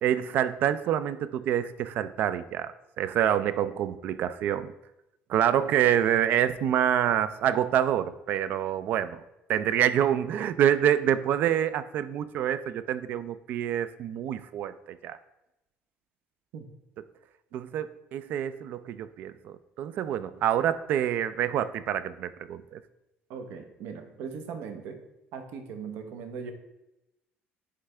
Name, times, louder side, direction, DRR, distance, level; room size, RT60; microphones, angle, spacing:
voice 1, 0.0-4.7 5.3-9.2 9.5-15.2 17.5-22.8, right 10 dB, 55° right, 14 dB, 0.3 m, -27 dB
voice 2, 23.3-25.0 25.3-26.5, right 6 dB, 75° right, 6 dB, 0.8 m, -39 dB
9.5 x 3.3 x 3.3 m, 0.91 s
cardioid pair, 160°, 4 cm